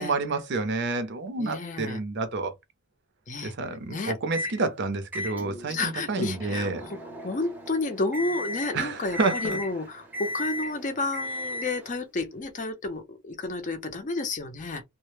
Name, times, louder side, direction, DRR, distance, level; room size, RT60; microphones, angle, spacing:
voice 1, 0.0-2.5 3.4-6.8 8.7-9.6, right 3 dB, 55° right, 0.6 m, -29 dB
voice 2, 1.4-2.0 3.3-3.5 3.9-4.1 5.7-7.0 7.2-14.8, left 3 dB, 35° left, 0.5 m, -31 dB
Microwave oven, 4.3-4.6 5.1-12.0, left 1 dB, 10° right, 0.7 m, -36 dB
2.1 x 2.0 x 3.1 m
head